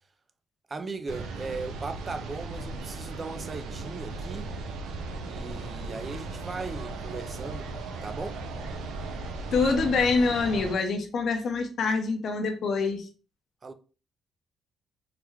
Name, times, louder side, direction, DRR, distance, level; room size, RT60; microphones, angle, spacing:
voice 1, 0.7-4.6 5.2-7.7 8.0-8.3 13.6-13.7, right 4 dB, 35° right, 0.4 m, -38 dB
sound 1, 1.1-10.8, right 3 dB, 85° right, 0.5 m, -37 dB
voice 2, 9.5-13.1, left 4 dB, 60° left, 0.7 m, -25 dB
3.3 x 2.2 x 3.4 m
cardioid pair, 90°, 0 cm